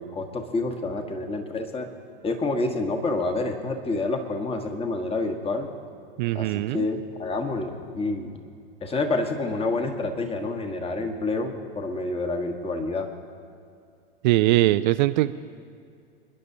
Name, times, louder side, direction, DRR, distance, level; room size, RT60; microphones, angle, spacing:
voice 1, 0.0-1.9 2.2-5.7 6.3-8.3 8.8-13.1, left 2 dB, 20° left, 4 dB, 1.4 m, -28 dB
voice 2, 6.2-6.9 14.2-15.3, right 17 dB, 50° right, 11 dB, 0.4 m, -21 dB
28.0 x 10.5 x 2.8 m, 2.4 s
hypercardioid pair, 105°, 30 cm